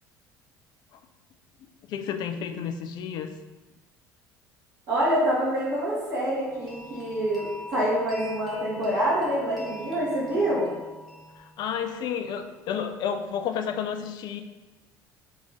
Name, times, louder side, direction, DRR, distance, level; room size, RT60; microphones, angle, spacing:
voice 1, 1.9-3.3 11.4-14.4, left 7 dB, 45° left, 8 dB, 0.4 m, -31 dB
voice 2, 4.9-10.7, right 1 dB, 50° right, -10 dB, 1.4 m, -26 dB
sound 1, 6.4-12.1, left 1 dB, ahead, 1.3 m, -43 dB
3.7 x 3.1 x 3.7 m, 1.1 s
figure-of-eight pair, 60°, 10 cm